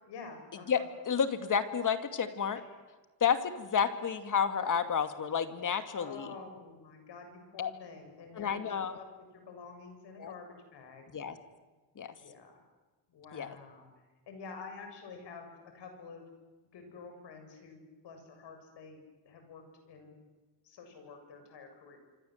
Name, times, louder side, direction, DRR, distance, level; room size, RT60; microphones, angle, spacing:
voice 1, 0.1-0.8 5.9-10.5 10.7-11.0 12.2-12.6 13.1-13.9 14.3-16.3 16.7-20.2 20.6-22.0, left 4 dB, 70° left, 5 dB, 7.6 m, -49 dB
voice 2, 1.1-2.6 3.2-6.3 7.6-7.7 8.3-9.0 10.2-10.3 11.1-11.4 12.0-12.1 13.3-13.6, left 7 dB, 45° left, 9 dB, 2.4 m, -30 dB
26.5 x 25.5 x 8.1 m, 1.3 s
cardioid pair, 120°, 44 cm